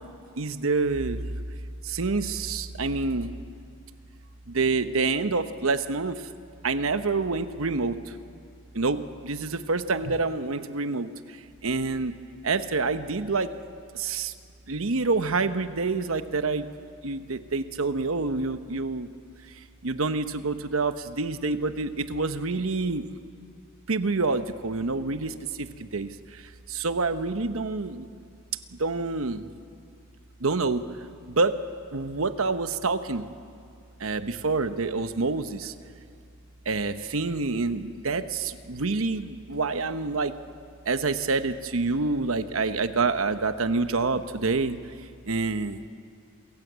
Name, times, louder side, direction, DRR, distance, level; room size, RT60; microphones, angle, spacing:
voice 1, 0.4-1.2 1.8-3.3 4.5-6.2 6.6-8.2 8.7-11.4 11.6-12.2 12.4-13.5 13.9-14.3 14.7-16.6 17.0-19.1 19.5-23.0 23.9-28.1 28.8-29.5 30.4-30.9 31.3-31.5 31.9-33.2 34.0-35.7 36.6-40.3 40.9-44.8 45.3-45.8, right 3 dB, 85° right, 10 dB, 1.0 m, -27 dB
27.5 x 16.0 x 8.1 m, 2.4 s
head